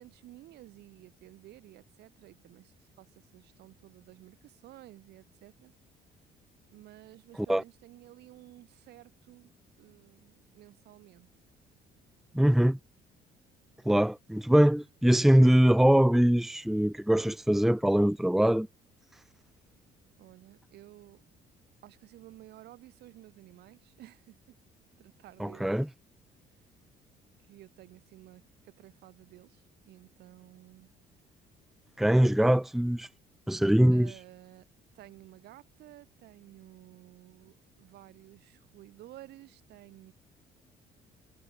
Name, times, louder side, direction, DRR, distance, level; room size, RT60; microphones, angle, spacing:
voice 1, 0.0-5.7 6.7-9.5 9.8-11.3 20.2-21.2 21.8-24.6 25.0-25.8 27.5-30.9 32.4-32.6 33.9-34.7 34.9-40.1, right 15 dB, 75° right, 6.9 m, -53 dB
voice 2, 12.3-12.8 13.8-18.7 25.4-25.9 32.0-33.1 33.5-34.1, equal, ahead, 0.8 m, -22 dB
cardioid pair, 110°, 17 cm